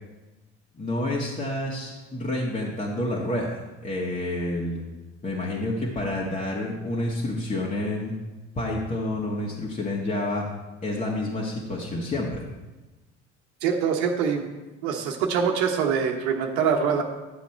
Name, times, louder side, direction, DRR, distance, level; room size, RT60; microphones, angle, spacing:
voice 1, 0.7-4.8 5.2-8.1 8.5-10.5 10.8-12.4, left 1 dB, 20° left, -4 dB, 1.8 m, -29 dB
voice 2, 13.6-14.5 14.8-17.0, right 6 dB, 70° right, 3 dB, 1.1 m, -24 dB
11.0 x 7.1 x 4.5 m, 1.1 s
hypercardioid pair, 65°, 34 cm